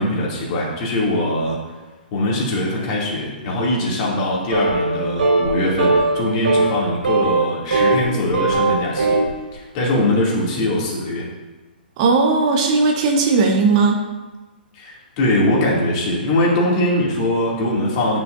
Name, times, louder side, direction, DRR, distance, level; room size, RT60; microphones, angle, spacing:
voice 1, 0.0-1.6 2.1-9.2 9.5-11.3 14.7-18.2, left 1 dB, 35° left, -4 dB, 2.4 m, -21 dB
sound 1, 4.5-4.9 5.2-5.5 5.8-6.2 6.4-6.7 7.0-8.0 8.3-9.3, right 3 dB, 65° right, 2.4 m, -18 dB
voice 2, 12.0-14.0, right 4 dB, 40° right, 2 dB, 0.9 m, -17 dB
9.2 x 6.0 x 2.6 m, 1.2 s
figure-of-eight pair, 120°, 6 cm